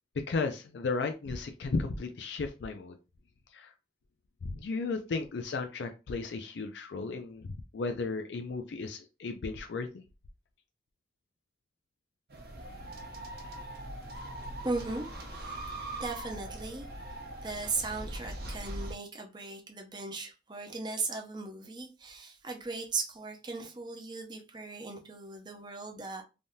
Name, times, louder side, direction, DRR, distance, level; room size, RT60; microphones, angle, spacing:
voice 1, 0.2-3.0 3.5-3.7 4.4-7.5 7.7-10.0, left 4 dB, 80° left, 0.4 m, -34 dB
sound 1, 12.3-18.9, right 1 dB, 55° right, 0.8 m, -41 dB
voice 2, 14.6-15.6 16.0-17.2 17.4-26.2, right 3 dB, 25° right, 0.6 m, -38 dB
3.4 x 2.7 x 2.2 m
head